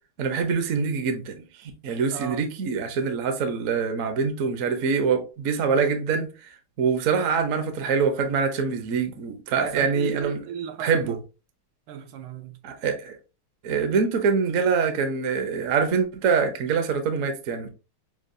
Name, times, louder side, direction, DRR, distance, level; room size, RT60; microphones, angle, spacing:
voice 1, 0.2-10.4 10.8-11.2 12.6-13.2 13.6-17.7, right 5 dB, 60° right, 0.8 m, -25 dB
voice 2, 9.6-11.1 11.9-12.6, right 8 dB, 80° right, 1.4 m, -36 dB
6.4 x 2.3 x 2.6 m
omnidirectional pair, 2.3 m